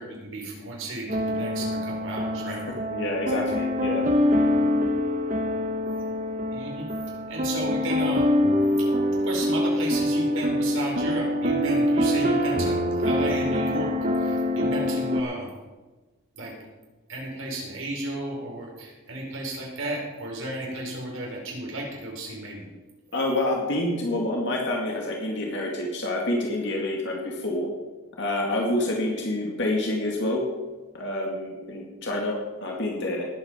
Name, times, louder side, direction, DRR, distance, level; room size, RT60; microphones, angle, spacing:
voice 1, 0.0-2.6 6.5-6.9 7.3-8.3 9.2-15.5 16.3-16.5 17.1-22.7, right 1 dB, 65° right, -1 dB, 5.0 m, -33 dB
sound 1, 1.1-15.2, left 1 dB, 35° right, 1.0 m, -25 dB
voice 2, 2.9-4.1 23.1-27.7 28.2-30.4 30.9-33.3, left 1 dB, 55° left, -1 dB, 2.3 m, -27 dB
19.0 x 8.9 x 5.3 m, 1.2 s
head